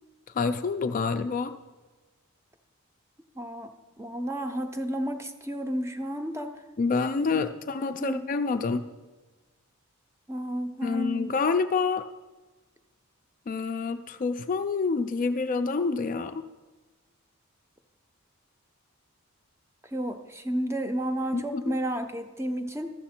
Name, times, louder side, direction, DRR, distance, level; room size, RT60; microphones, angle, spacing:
voice 1, 0.4-1.6 6.8-8.9 10.8-12.1 13.5-16.5 21.3-21.8, left 4 dB, 35° left, 8 dB, 0.3 m, -27 dB
voice 2, 3.4-6.6 8.0-8.3 10.3-11.2 19.9-22.9, right 1 dB, 10° right, 7 dB, 0.6 m, -32 dB
13.0 x 7.0 x 4.3 m, 1.3 s
head